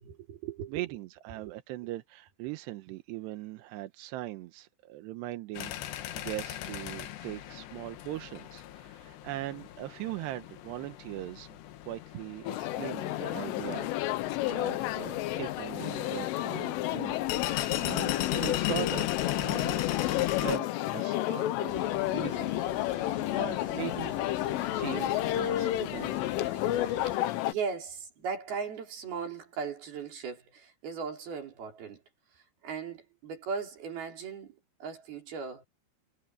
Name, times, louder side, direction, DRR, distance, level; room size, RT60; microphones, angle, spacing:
voice 1, 0.0-0.9 1.4-1.5 21.8-22.2 27.1-32.0 32.3-35.6, right 6 dB, 50° right, 5.7 m, -38 dB
voice 2, 0.7-11.6 11.9-13.9 14.1-21.8 22.1-22.5 22.9-24.2 24.7-26.2, right 16 dB, 75° right, 2.7 m, -40 dB
sound 1, 5.5-20.6, left 14 dB, 70° left, 3.1 m, -37 dB
sound 2, 12.5-27.5, left 15 dB, 90° left, 3.6 m, -31 dB
sound 3, 21.7-27.2, right 2 dB, 30° right, 1.1 m, -47 dB
omnidirectional pair, 5.7 m